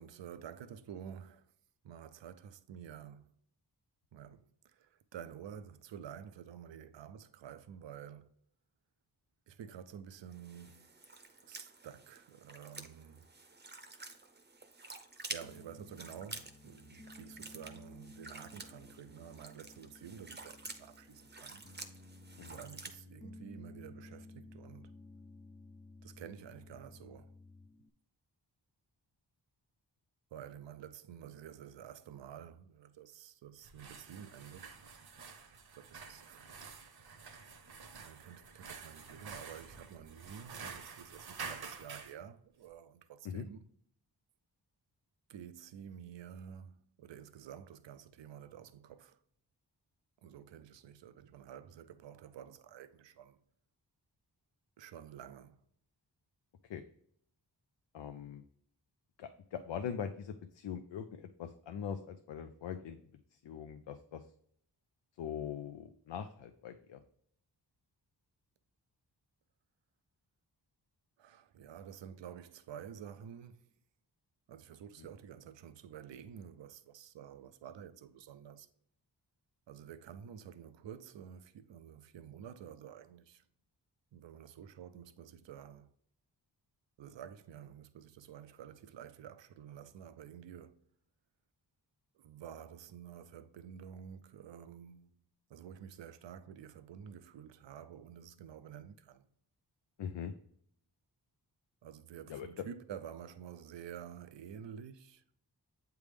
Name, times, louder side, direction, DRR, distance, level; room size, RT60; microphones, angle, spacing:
voice 1, 0.0-1.5 1.8-3.3 4.1-8.3 9.5-10.9 11.5-13.3 15.3-21.7 22.5-24.9 26.0-27.4 30.3-34.8 35.7-36.5 38.0-43.7 45.3-49.2 50.2-53.4 54.8-55.6 71.2-73.7 74.5-78.7 79.7-83.4 84.1-85.9 87.0-90.8 92.1-95.2 95.5-99.3 101.8-105.3, right 8 dB, 90° right, 0.5 m, -50 dB
sound 1, 10.3-23.0, right 3 dB, 25° right, 0.6 m, -50 dB
Piano, 15.4-27.9, left 2 dB, 20° left, 0.4 m, -55 dB
sound 2, 33.6-42.2, right 5 dB, 60° right, 0.8 m, -49 dB
voice 2, 57.9-58.4 59.2-63.0 63.4-64.2 65.2-67.0 100.0-100.3 102.3-102.5, left 8 dB, 90° left, 0.5 m, -42 dB
8.1 x 3.5 x 3.3 m
wide cardioid pair, 115°, 43 cm